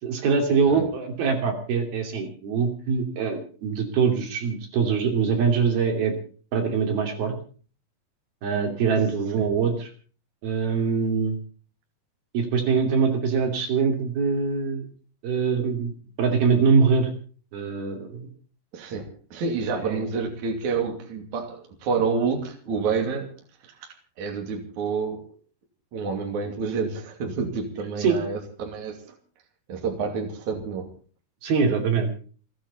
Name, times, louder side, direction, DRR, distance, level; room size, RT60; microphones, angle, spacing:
voice 1, 0.0-6.1 6.5-7.4 8.4-9.9 10.4-11.4 12.3-14.9 15.2-15.9 16.2-17.1 17.5-18.3 19.8-20.0 28.0-28.2 31.4-32.1, right 5 dB, 65° right, 4 dB, 4.6 m, -23 dB
voice 2, 18.7-23.3 23.6-25.3 25.9-29.0 29.7-30.9, right 5 dB, 50° right, 3 dB, 3.8 m, -29 dB
29.0 x 10.0 x 4.1 m, 0.40 s
omnidirectional pair, 4.7 m